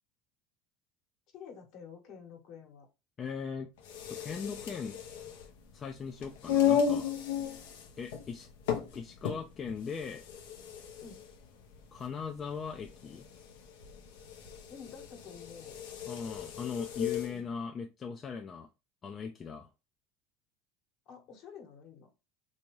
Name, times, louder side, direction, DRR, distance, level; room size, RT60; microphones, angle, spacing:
voice 1, 1.3-2.9 11.0-11.2 14.7-15.8 17.2-17.6 21.1-22.1, left 6 dB, 55° left, 1.2 m, -50 dB
voice 2, 3.2-3.7 4.2-5.0 5.7-7.1 8.0-8.5 8.9-10.2 11.9-13.3 16.1-18.7 19.0-19.7, left 6 dB, 30° left, 0.3 m, -39 dB
sound 1, 3.8-17.4, left 8 dB, 85° left, 0.7 m, -35 dB
3.4 x 2.7 x 3.1 m
supercardioid pair, 120°, 0 cm